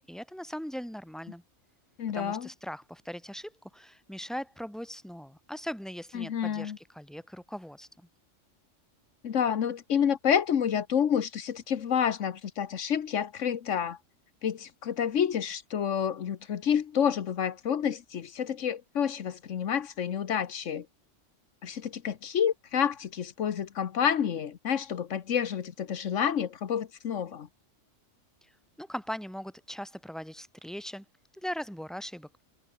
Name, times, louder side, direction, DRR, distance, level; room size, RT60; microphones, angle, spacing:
voice 1, 0.1-1.4 2.1-8.1 28.4-28.5 28.8-31.1 31.3-32.3, equal, ahead, 3.7 m, -40 dB
voice 2, 2.0-2.5 6.1-6.8 9.2-14.0 14.4-20.9 21.6-27.5, left 8 dB, 80° left, 1.4 m, -29 dB
omnidirectional pair, 1.3 m